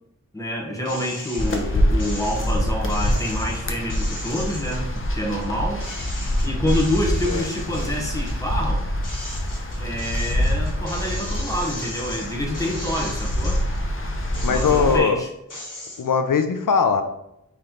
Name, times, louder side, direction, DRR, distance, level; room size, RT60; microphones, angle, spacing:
voice 1, 0.3-5.9 6.4-8.9 9.8-13.6 14.5-15.3, equal, 10° left, -1 dB, 1.2 m, -27 dB
sound 1, 0.8-1.6 2.0-5.5 5.8-8.4 8.8-13.8 14.2-15.1 15.5-16.0, left 1 dB, 70° left, 1.6 m, -37 dB
sound 2, 1.4-15.0, equal, 40° left, 0.7 m, -25 dB
voice 2, 14.4-15.2 16.0-17.0, left 5 dB, 85° left, 8 dB, 0.5 m, -20 dB
4.4 x 3.2 x 3.7 m, 0.83 s
wide cardioid pair, 50°, 32 cm